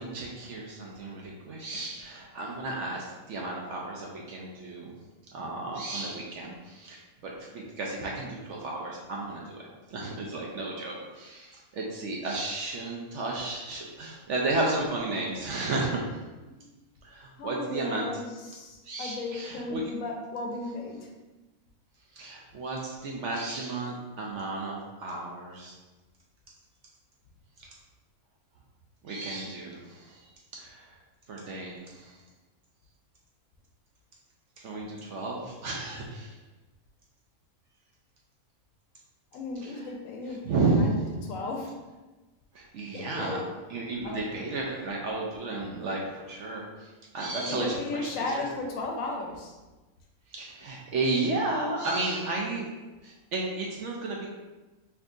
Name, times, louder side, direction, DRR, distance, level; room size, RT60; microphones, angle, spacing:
voice 1, 0.0-4.9 5.3-9.6 9.9-16.0 17.0-18.1 18.8-19.8 22.1-25.7 27.6-27.7 29.0-30.3 30.6-30.9 31.3-32.2 34.6-36.4 39.6-39.9 40.5-40.8 41.1-41.2 42.5-43.4 43.7-48.1 48.4-48.5 50.3-52.7 53.0-54.3, right 2 dB, 65° right, -2 dB, 0.8 m, -33 dB
voice 2, 17.4-21.1 39.3-41.7 42.9-43.6 44.0-44.5 47.5-49.5, left 3 dB, 70° left, 0 dB, 0.9 m, -35 dB
4.4 x 2.7 x 2.4 m, 1.2 s
omnidirectional pair, 1.6 m